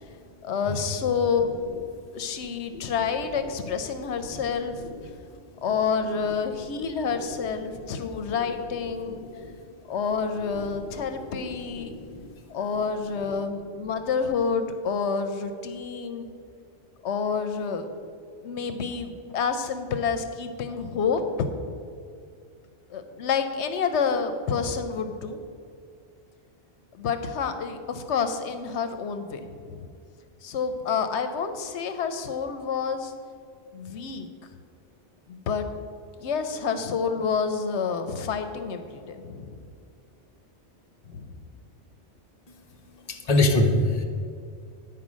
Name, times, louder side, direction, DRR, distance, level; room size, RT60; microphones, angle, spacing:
voice 1, 0.4-1.5 2.1-4.9 5.6-9.2 9.9-11.9 12.5-16.3 17.0-17.9 18.4-21.5 22.9-25.4 26.9-29.9 30.4-33.1 33.7-34.3 35.3-35.7 36.2-39.6 41.1-41.3, left 6 dB, 80° left, 8 dB, 0.9 m, -28 dB
voice 2, 11.8-12.3 43.1-44.0, left 2 dB, 40° left, 2 dB, 0.9 m, -23 dB
10.0 x 4.6 x 6.1 m, 2.3 s
omnidirectional pair, 1.1 m